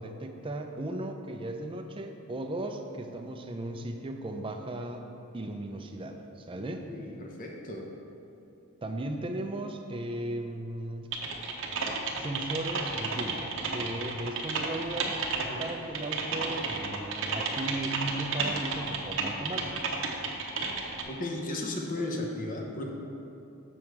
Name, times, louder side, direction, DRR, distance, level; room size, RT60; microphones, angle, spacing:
voice 1, 0.0-5.0 5.3-6.9 8.8-11.1 12.1-15.2 15.6-19.9, right 1 dB, 25° right, 4 dB, 0.5 m, -36 dB
voice 2, 6.9-7.8 15.5-15.6 21.1-22.9, left 2 dB, 40° left, 0 dB, 0.8 m, -35 dB
Typing, 11.1-21.0, right 4 dB, 60° right, 0.8 m, -32 dB
7.2 x 6.3 x 4.6 m, 2.7 s
head